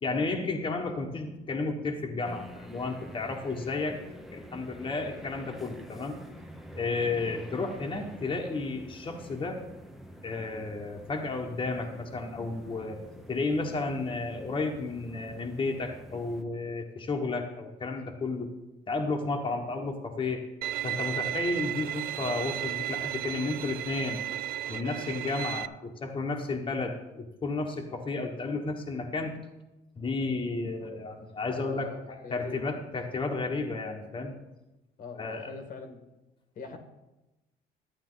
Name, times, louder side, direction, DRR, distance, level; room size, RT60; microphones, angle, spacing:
voice 1, 0.0-4.0 4.3-6.2 6.7-9.6 10.2-13.0 13.3-18.5 18.9-20.4 20.8-24.2 24.7-29.3 30.0-31.9 32.3-34.3 35.2-35.6, left 3 dB, 30° left, 1 dB, 1.4 m, -32 dB
sound 1, 2.2-16.4, equal, ahead, 1.0 m, -47 dB
Bowed string instrument, 20.6-25.7, right 13 dB, 65° right, 0.4 m, -34 dB
voice 2, 30.6-31.0 31.5-32.7 35.0-36.0 36.5-36.8, left 4 dB, 55° left, 5 dB, 1.6 m, -42 dB
12.0 x 8.7 x 4.0 m, 0.98 s
cardioid pair, 110°, 17 cm